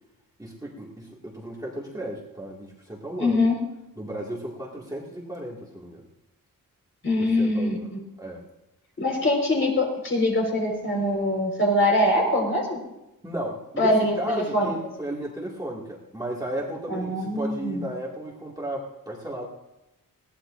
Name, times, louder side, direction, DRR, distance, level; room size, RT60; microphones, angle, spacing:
voice 1, 0.4-3.5 4.0-6.0 7.2-8.4 13.2-19.4, right 1 dB, 10° right, -4 dB, 2.1 m, -34 dB
voice 2, 3.2-3.6 7.0-7.8 9.0-12.8 13.8-14.7 16.9-17.8, left 1 dB, 35° left, 0 dB, 4.6 m, -23 dB
21.0 x 17.5 x 2.6 m, 0.95 s
wide cardioid pair, 170°, 35 cm